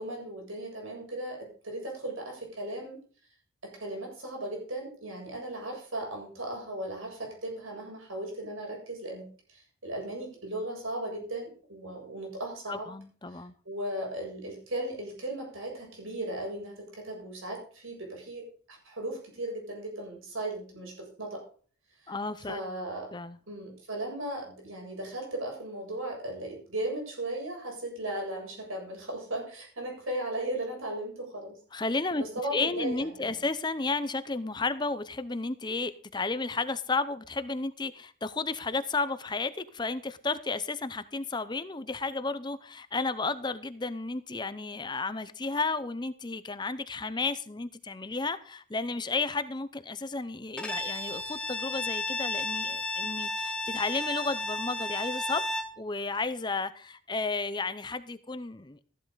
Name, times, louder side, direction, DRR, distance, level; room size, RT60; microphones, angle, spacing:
voice 1, 0.0-3.0 3.6-12.9 13.3-13.4 13.7-21.4 22.0-22.2 22.5-23.1 23.5-31.6 32.2-33.4, right 1 dB, 85° right, 1 dB, 7.4 m, -37 dB
voice 2, 12.7-13.5 22.1-22.6 23.1-23.4 31.7-32.2 32.5-58.9, left 3 dB, 20° left, 13 dB, 0.7 m, -33 dB
Bowed string instrument, 50.6-55.8, left 2 dB, 5° left, 1.6 m, -33 dB
15.0 x 11.5 x 4.0 m, 0.42 s
head